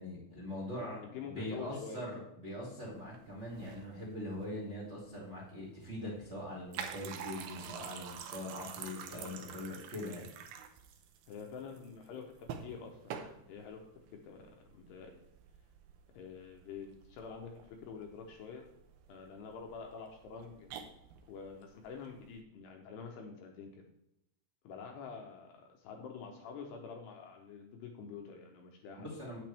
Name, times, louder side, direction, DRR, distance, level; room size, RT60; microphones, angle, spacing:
voice 1, 0.0-1.0 1.3-10.3 29.0-29.4, left 1 dB, 30° right, -5 dB, 1.1 m, -42 dB
voice 2, 0.8-2.1 9.1-9.4 11.3-13.9 14.2-15.2 16.1-18.7 19.1-20.7 21.3-23.9 24.6-29.1, left 5 dB, 75° left, 2 dB, 2.7 m, -47 dB
sound 1, 2.9-22.4, right 8 dB, 85° right, 2.2 m, -49 dB
9.1 x 8.8 x 3.4 m, 0.79 s
omnidirectional pair, 5.5 m